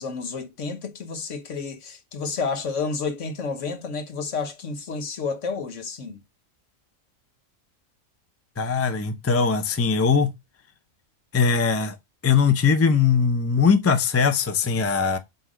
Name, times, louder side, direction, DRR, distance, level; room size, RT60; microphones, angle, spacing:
voice 1, 0.0-6.2, left 4 dB, 65° left, 1.3 m, -30 dB
voice 2, 8.6-10.3 11.3-12.0 12.2-15.2, left 5 dB, 15° left, 0.5 m, -20 dB
7.9 x 2.8 x 5.0 m
omnidirectional pair, 1.4 m